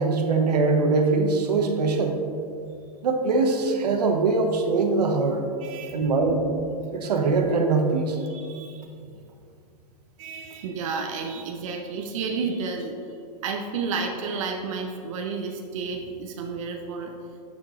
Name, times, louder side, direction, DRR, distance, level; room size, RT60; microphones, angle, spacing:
voice 1, 0.0-2.1 3.0-5.4 5.9-6.4 6.9-8.2, right 3 dB, 85° right, 4 dB, 1.0 m, -22 dB
voice 2, 5.6-6.1 8.3-9.1 10.2-12.9 13.4-17.1, right 4 dB, 55° right, 2 dB, 0.7 m, -31 dB
10.5 x 6.9 x 2.5 m, 2.4 s
hypercardioid pair, 155°, 20 cm